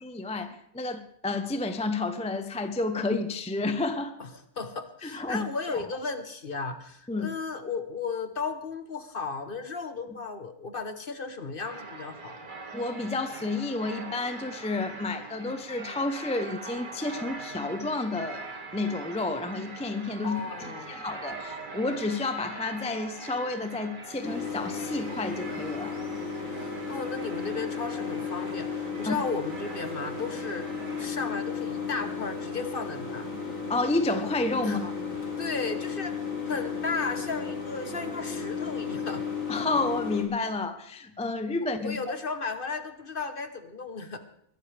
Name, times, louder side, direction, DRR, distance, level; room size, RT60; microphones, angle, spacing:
voice 1, 0.0-4.2 5.0-5.8 7.1-7.3 12.7-18.4 18.7-25.9 29.1-29.2 33.7-34.9 39.5-42.0, left 2 dB, 5° left, 8 dB, 0.6 m, -30 dB
voice 2, 4.6-12.4 20.2-21.0 26.5-30.7 31.0-33.3 34.6-34.8 35.4-39.2 41.8-44.2, left 4 dB, 40° left, 8 dB, 1.2 m, -35 dB
sound 1, 11.6-31.1, right 3 dB, 35° right, 1.6 m, -43 dB
sound 2, 24.2-40.2, left 5 dB, 65° left, 3.0 m, -34 dB
22.0 x 12.0 x 3.4 m, 0.73 s
omnidirectional pair, 1.5 m